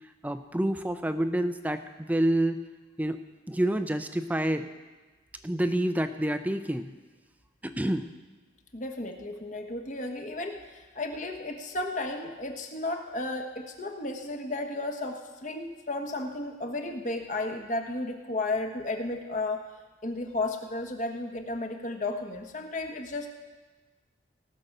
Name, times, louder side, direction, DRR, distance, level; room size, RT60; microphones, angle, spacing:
voice 1, 0.2-2.6 3.0-3.2 3.5-4.7 5.4-6.9 7.6-8.1, right 1 dB, 10° right, 9 dB, 0.5 m, -28 dB
voice 2, 8.7-19.7 20.0-23.3, left 2 dB, 40° left, 4 dB, 1.3 m, -33 dB
18.0 x 6.2 x 6.7 m, 1.2 s
head